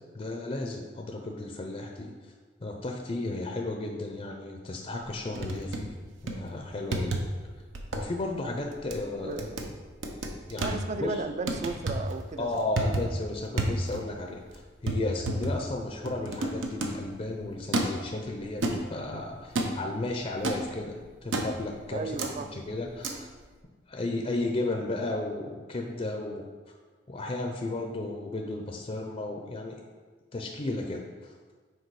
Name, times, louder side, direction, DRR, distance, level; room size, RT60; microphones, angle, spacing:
voice 1, 0.1-2.3 2.6-5.9 6.2-7.2 7.9-9.6 10.4-11.2 12.4-23.3 23.9-26.7 27.1-29.8 30.3-31.5, left 2 dB, 30° left, 2 dB, 0.5 m, -34 dB
sound 1, 5.0-6.0 6.3-6.5 6.9-7.4 7.7-8.1 8.5-9.0 9.4-9.7 10.0-10.8 11.5-12.1 12.6-13.2 13.6-14.2 14.4-14.5 14.9-17.1 17.7-18.1 18.6-19.1 19.6-19.8 20.4-20.7 21.3-21.7 22.2-22.3 23.0-23.1, right 1 dB, 85° right, 0.8 m, -31 dB
voice 2, 10.6-12.6 21.9-22.5, right 3 dB, 35° right, 8 dB, 0.4 m, -34 dB
6.6 x 4.6 x 4.7 m, 1.4 s
head